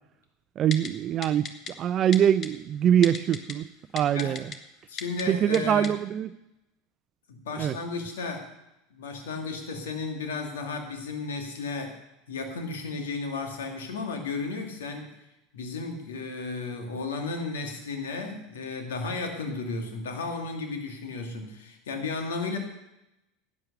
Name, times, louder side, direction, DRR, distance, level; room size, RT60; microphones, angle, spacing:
voice 1, 0.6-1.5 1.8-3.7 3.9-4.5 5.3-6.3 7.6-7.7, right 10 dB, 40° right, 14 dB, 0.5 m, -23 dB
Typing, 0.7-0.9 1.2-1.7 2.1-2.5 3.0-3.5 4.0-4.6 5.0-5.2 5.5-5.6 5.8-5.9, left 5 dB, 35° left, 1.4 m, -34 dB
voice 2, 4.9-5.9 7.3-8.5 8.9-11.9 12.3-15.1 15.5-22.6, left 3 dB, 75° left, 4 dB, 2.4 m, -34 dB
11.5 x 9.7 x 6.7 m, 0.91 s
hypercardioid pair, 80°, 0 cm